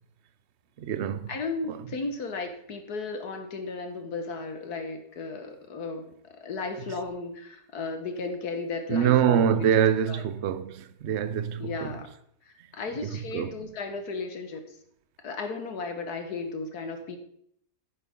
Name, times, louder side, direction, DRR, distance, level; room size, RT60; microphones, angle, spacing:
voice 1, 0.8-1.3 1.7-1.8 8.9-12.0 13.0-13.5, right 9 dB, 60° right, 0.7 m, -25 dB
voice 2, 1.3-9.7 10.1-10.2 11.6-12.1 12.7-14.6 15.2-17.2, left 4 dB, 65° left, 1.8 m, -35 dB
10.0 x 9.5 x 3.6 m
omnidirectional pair, 1.8 m